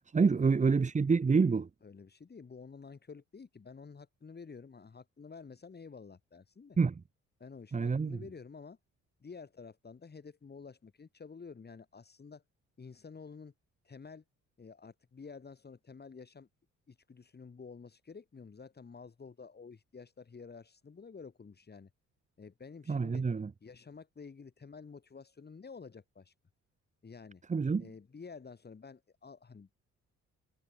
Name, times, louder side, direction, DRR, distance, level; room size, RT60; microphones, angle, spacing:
voice 1, 0.0-1.7 6.8-6.9 7.7-8.2 22.9-23.5 27.5-27.8, right 5 dB, 25° right, 1.0 m, -27 dB
voice 2, 1.8-6.8 7.4-8.8 9.2-12.4 12.8-13.5 13.8-14.2 14.6-16.5 16.9-21.9 22.4-23.3 23.6-26.3 27.0-27.4 27.8-29.8, left 5 dB, 35° left, 4.4 m, -50 dB
cardioid pair, 90°, 30 cm